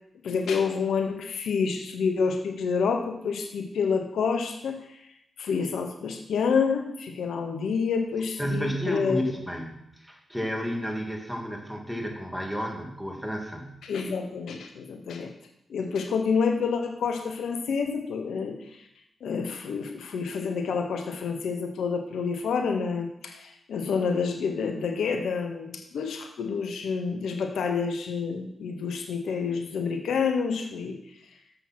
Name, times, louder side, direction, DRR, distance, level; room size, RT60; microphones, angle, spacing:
voice 1, 0.2-5.0 5.4-9.3 13.8-15.3 15.7-18.8 19.2-31.0, left 5 dB, 80° left, 4 dB, 1.1 m, -28 dB
voice 2, 8.4-13.8, equal, ahead, 1 dB, 2.6 m, -32 dB
7.5 x 6.7 x 6.1 m, 0.79 s
supercardioid pair, 50°, 0 cm